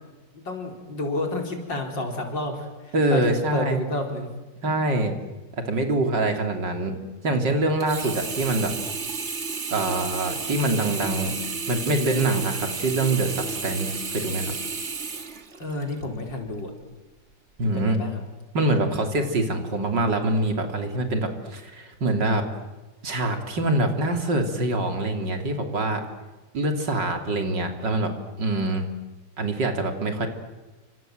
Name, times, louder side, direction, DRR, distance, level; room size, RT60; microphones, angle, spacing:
voice 1, 0.4-4.3 15.6-16.7 17.7-18.2, left 2 dB, 75° left, 3 dB, 5.1 m, -30 dB
voice 2, 2.9-3.8 4.6-5.1 5.7-6.9 7.2-8.7 9.7-11.3 11.7-14.5 17.6-18.0 18.5-22.4 23.0-26.0 26.5-28.1 28.4-28.9 29.4-30.3, right 2 dB, 70° right, 5 dB, 3.7 m, -24 dB
Sink (filling or washing), 7.8-16.0 16.6-16.7, right 5 dB, 40° right, 1.8 m, -32 dB
29.0 x 25.5 x 7.9 m, 1.2 s
omnidirectional pair, 2.0 m